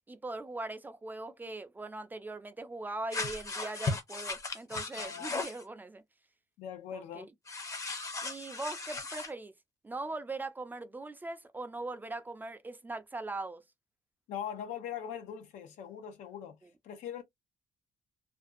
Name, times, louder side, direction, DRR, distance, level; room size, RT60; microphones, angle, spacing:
voice 1, 0.1-6.0 6.9-7.3 8.2-9.5 9.8-13.6, right 2 dB, 15° right, 0.4 m, -40 dB
sound 1, 3.1-5.6 7.5-9.3, left 3 dB, 25° left, 0.6 m, -37 dB
voice 2, 5.0-5.4 6.6-7.3 14.3-16.6 16.8-17.2, left 9 dB, 85° left, 0.6 m, -41 dB
2.5 x 2.2 x 2.4 m
cardioid pair, 105°, 12 cm